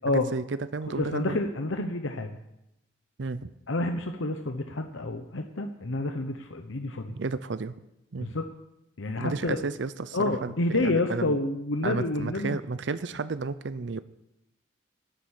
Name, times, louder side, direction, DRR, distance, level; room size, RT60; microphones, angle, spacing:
voice 1, 0.1-1.4 3.2-3.5 7.1-7.7 8.1-8.3 9.2-11.4 11.8-14.0, right 3 dB, 65° right, 14 dB, 0.6 m, -32 dB
voice 2, 1.0-2.4 3.7-7.2 8.2-8.4 9.0-9.6 10.1-12.6, left 2 dB, 85° left, 5 dB, 1.0 m, -29 dB
12.0 x 9.2 x 8.6 m, 0.87 s
head